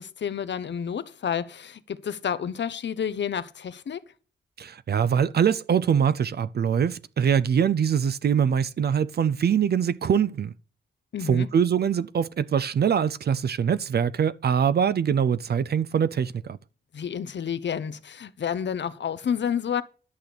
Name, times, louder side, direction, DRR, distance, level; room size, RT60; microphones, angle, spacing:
voice 1, 0.0-4.0 11.1-11.5 16.9-19.8, left 8 dB, 80° left, 0.8 m, -30 dB
voice 2, 4.6-10.5 11.3-16.6, right 7 dB, 60° right, 0.5 m, -23 dB
11.0 x 6.8 x 5.9 m
wide cardioid pair, 140°, 18 cm